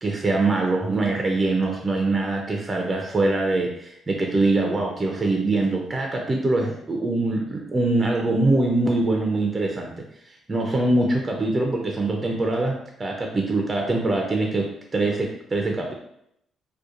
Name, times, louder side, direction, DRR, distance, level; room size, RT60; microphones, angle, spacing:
voice 1, 0.0-10.0 10.5-15.9, right 2 dB, 25° right, 1 dB, 0.4 m, -23 dB
2.7 x 2.2 x 2.4 m, 0.75 s
cardioid pair, 90°, 0 cm